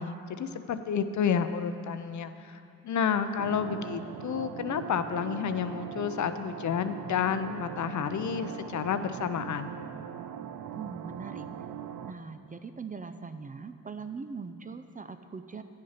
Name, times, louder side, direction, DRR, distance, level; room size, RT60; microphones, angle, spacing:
voice 1, 0.0-2.6 2.8-9.8, left 7 dB, 55° left, 10 dB, 0.6 m, -30 dB
sound 1, 3.4-12.1, right 9 dB, 70° right, 0.6 m, -40 dB
voice 2, 10.7-11.5 12.0-15.6, right 5 dB, 25° right, 9 dB, 0.4 m, -41 dB
9.3 x 6.4 x 5.7 m, 2.4 s
supercardioid pair, 50°, 36 cm